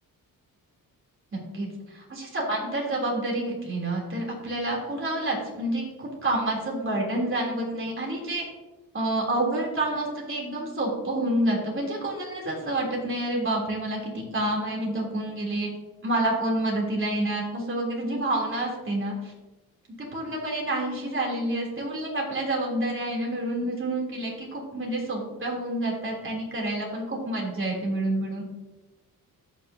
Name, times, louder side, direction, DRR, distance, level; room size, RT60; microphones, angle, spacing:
voice 1, 1.3-8.4 8.9-15.7 16.0-19.3 20.0-28.4, right 1 dB, 35° right, -3 dB, 3.5 m, -28 dB
17.5 x 6.2 x 2.8 m, 1.1 s
cardioid pair, 110°, 36 cm